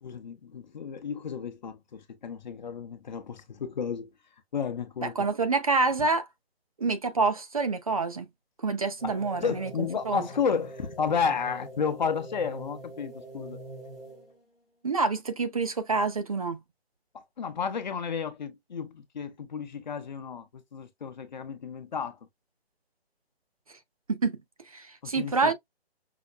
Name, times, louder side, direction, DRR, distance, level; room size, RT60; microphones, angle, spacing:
voice 1, 0.0-4.1 4.5-5.2 6.0-6.1 9.0-13.6 17.4-22.2 25.0-25.5, left 6 dB, 45° left, 0.8 m, -32 dB
voice 2, 5.0-6.3 6.8-8.3 8.6-9.7 10.1-10.2 14.8-16.6 24.1-24.4 24.7-25.5, right 4 dB, 35° right, 0.5 m, -27 dB
sound 1, 9.0-14.4, right 2 dB, ahead, 0.8 m, -44 dB
5.7 x 2.1 x 2.3 m
figure-of-eight pair, 150°, 32 cm